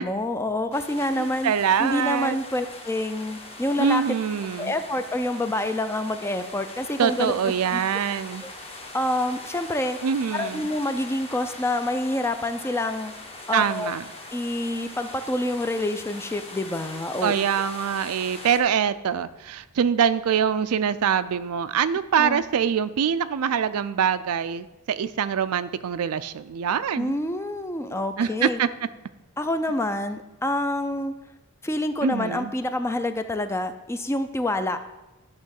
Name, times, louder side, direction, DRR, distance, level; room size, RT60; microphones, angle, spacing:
voice 1, 0.0-1.5 1.8-4.0 4.6-7.3 7.7-7.8 8.4-8.5 8.9-10.0 10.3-13.1 13.5-13.9 14.3-17.3 22.2-22.4 27.0-28.6 29.4-31.1 31.6-34.8, left 1 dB, 10° left, 9 dB, 0.4 m, -27 dB
sound 1, 0.7-18.6, left 2 dB, 25° left, 1.1 m, -41 dB
voice 2, 1.2-2.4 3.8-4.7 7.0-8.4 10.0-10.7 13.5-14.0 17.2-27.2 28.2-28.7 32.0-32.5, right 7 dB, 75° right, 14 dB, 0.4 m, -24 dB
10.5 x 3.6 x 6.4 m, 1.1 s
head